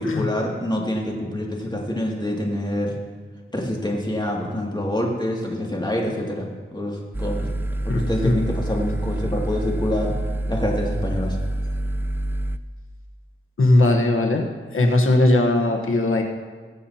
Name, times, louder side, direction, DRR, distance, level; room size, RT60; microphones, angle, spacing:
voice 1, 0.0-2.9 3.5-7.5 7.8-10.2 10.5-11.4, left 1 dB, 20° left, -1 dB, 2.4 m, -26 dB
sound 1, 7.1-12.6, right 1 dB, 10° right, 0.5 m, -27 dB
voice 2, 7.9-8.4 13.6-16.2, left 2 dB, 75° left, 2 dB, 1.3 m, -19 dB
21.0 x 7.3 x 2.9 m, 1.5 s
cardioid pair, 50°, 21 cm